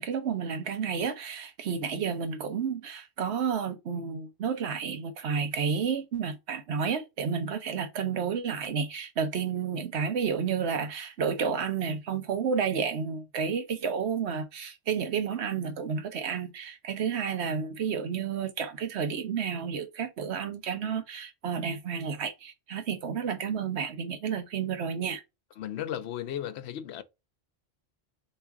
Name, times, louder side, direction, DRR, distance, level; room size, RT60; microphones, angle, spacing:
voice 1, 0.0-25.2, right 6 dB, 80° right, 1.1 m, -31 dB
voice 2, 25.6-27.0, left 11 dB, 80° left, 0.9 m, -35 dB
3.6 x 3.1 x 4.5 m
omnidirectional pair, 1.1 m